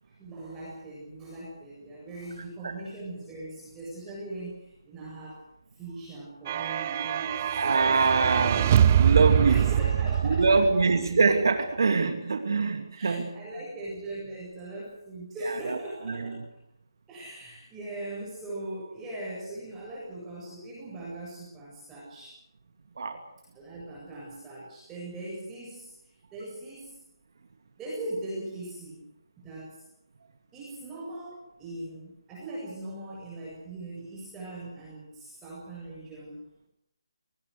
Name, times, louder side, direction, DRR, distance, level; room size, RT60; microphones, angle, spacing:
voice 1, 0.0-5.4 5.8-8.2 8.5-8.7 9.5-10.6 11.7-11.8 12.6-16.4 17.1-22.3 23.5-25.9 26.3-27.0 27.8-29.0 29.4-29.8 30.5-36.4, right 1 dB, 10° right, -5 dB, 7.9 m, -40 dB
sound 1, 6.5-11.1, right 9 dB, 30° right, 0.9 m, -24 dB
voice 2, 7.5-8.7 9.0-9.7 10.2-13.4 15.4-15.8 16.1-16.4 23.0-23.2, right 4 dB, 60° right, 5 dB, 2.6 m, -24 dB
29.0 x 19.5 x 6.7 m, 0.79 s
figure-of-eight pair, 160°, 2 cm